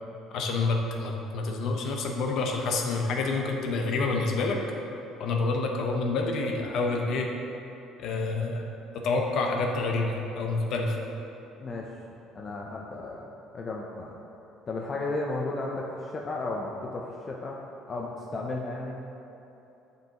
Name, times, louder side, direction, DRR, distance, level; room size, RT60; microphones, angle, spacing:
voice 1, 0.3-4.6 5.2-7.3 8.0-8.7 8.9-11.0, left 3 dB, 50° left, 1 dB, 0.8 m, -28 dB
voice 2, 12.3-14.1 14.7-17.6 17.9-19.0, left 2 dB, 25° left, -1 dB, 0.4 m, -34 dB
10.5 x 5.4 x 2.9 m, 3.0 s
cardioid pair, 175°, 0 cm